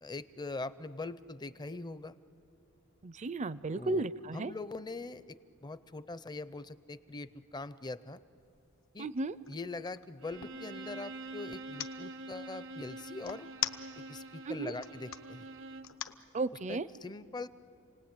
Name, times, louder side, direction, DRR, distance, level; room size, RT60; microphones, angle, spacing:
voice 1, 0.0-2.2 3.7-4.0 4.3-8.2 8.9-9.1 9.5-13.5 14.0-15.5 16.7-17.5, left 3 dB, 20° left, 15 dB, 0.6 m, -42 dB
voice 2, 3.0-4.5 9.0-9.4 14.5-14.7 16.3-16.9, right 2 dB, 35° right, 17 dB, 0.5 m, -34 dB
sound 1, 8.4-8.6 9.0-10.6 11.5-11.9 13.2-14.2 14.7-15.2 15.8-16.2, left 10 dB, 65° left, 0.9 m, -39 dB
Bowed string instrument, 10.2-16.0, right 2 dB, 65° right, 0.8 m, -46 dB
30.0 x 19.0 x 9.0 m, 2.6 s
head